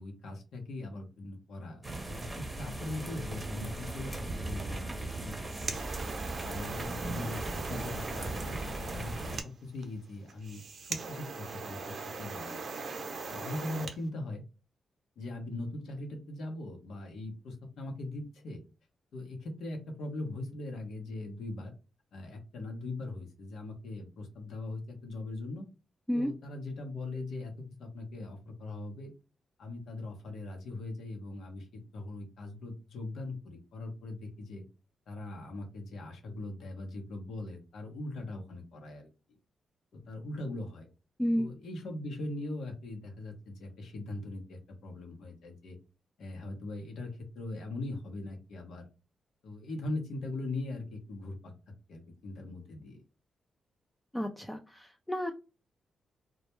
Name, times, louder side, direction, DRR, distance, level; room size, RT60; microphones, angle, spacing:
voice 1, 0.0-5.9 6.4-12.6 13.3-14.4 15.2-18.6 19.1-21.7 22.1-25.7 26.1-27.5 27.8-29.1 29.6-34.6 35.1-39.1 39.9-40.9 41.3-45.8 46.2-48.8 49.4-51.5 51.9-53.0, left 2 dB, 80° left, 3 dB, 0.8 m, -40 dB
sound 1, 1.8-9.4, right 2 dB, 20° right, 0.8 m, -38 dB
sound 2, 5.2-14.0, right 4 dB, 60° right, 0.5 m, -40 dB
voice 2, 54.1-55.3, equal, 10° left, 4 dB, 0.4 m, -31 dB
2.2 x 2.1 x 2.9 m, 0.31 s
supercardioid pair, 55°, 0 cm